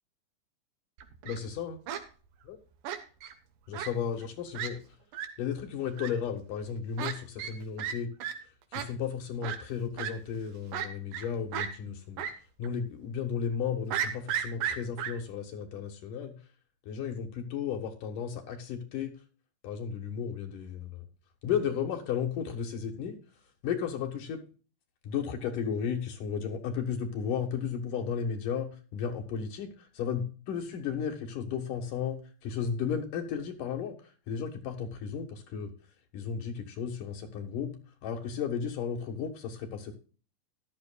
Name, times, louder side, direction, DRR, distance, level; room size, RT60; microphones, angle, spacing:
Fowl, 1.0-1.4 1.9-2.0 2.8-3.3 3.7-3.9 4.2-4.3 4.5-4.7 5.1-5.3 6.0-6.1 7.0-7.1 7.4-7.5 7.8-7.9 8.2-8.3 8.7-8.9 9.4-9.6 10.0-10.1 10.7-11.3 11.5-11.7 12.2-12.3 12.6-12.7 13.9-15.1, right 9 dB, 70° right, 2.5 m, -33 dB
voice 1, 1.2-1.8 2.4-2.6 3.7-4.8 5.4-8.1 8.7-12.2 12.6-16.4 16.9-19.1 19.6-21.0 21.4-23.2 23.6-24.4 25.0-34.0 34.3-35.7 36.1-40.0, left 7 dB, 70° left, 4 dB, 3.0 m, -34 dB
14.0 x 11.5 x 2.3 m, 0.37 s
omnidirectional pair, 3.9 m